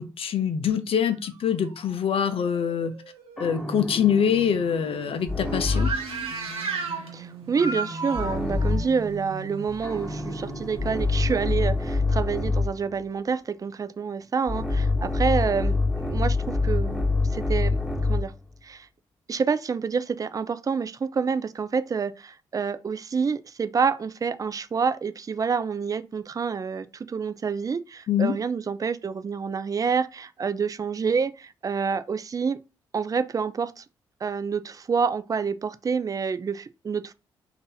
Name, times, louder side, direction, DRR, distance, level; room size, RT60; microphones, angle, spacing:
voice 1, 0.0-2.9 3.4-5.9 28.1-28.4, left 8 dB, 55° left, 0.6 m, -24 dB
sound 1, 0.9-12.0, right 3 dB, 80° right, 0.6 m, -43 dB
sound 2, 3.4-6.1 8.1-9.0 9.8-12.8 14.5-18.3, left 3 dB, ahead, 1.3 m, -26 dB
sound 3, 4.6-11.1, right 3 dB, 60° right, 1.1 m, -35 dB
voice 2, 7.1-17.0 17.3-17.8 18.1-18.3 18.6-18.9 19.3-32.6 32.9-33.8 34.2-37.1, right 5 dB, 30° right, 0.4 m, -28 dB
2.6 x 2.6 x 3.8 m
hypercardioid pair, 40°, 11 cm